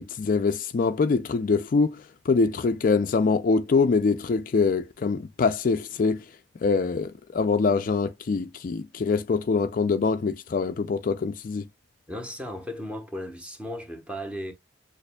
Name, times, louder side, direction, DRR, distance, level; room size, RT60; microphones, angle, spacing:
voice 1, 0.0-6.2 6.6-11.6, left 4 dB, 45° left, 0.4 m, -24 dB
voice 2, 12.1-14.5, equal, 5° right, 1.0 m, -35 dB
6.6 x 2.5 x 2.2 m
head